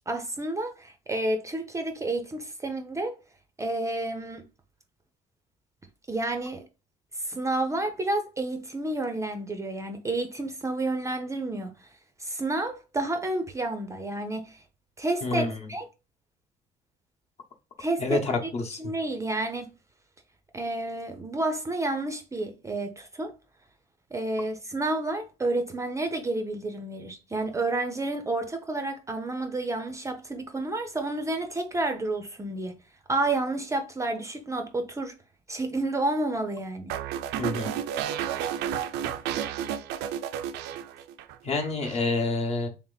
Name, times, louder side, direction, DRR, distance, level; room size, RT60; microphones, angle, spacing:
voice 1, 0.1-3.2 3.6-4.4 6.1-6.6 7.1-11.9 12.2-14.6 15.0-15.9 17.8-18.5 18.8-19.7 20.5-23.3 24.1-32.8 33.1-35.1 35.5-36.9, right 2 dB, 20° right, 0.5 m, -30 dB
voice 2, 15.2-15.6 18.0-18.8 37.4-37.7 41.4-42.7, left 3 dB, 40° left, 0.9 m, -28 dB
sound 1, 36.9-41.3 41.6-42.0, right 9 dB, 85° right, 0.4 m, -32 dB
3.3 x 2.9 x 3.9 m
cardioid pair, 110°, 17 cm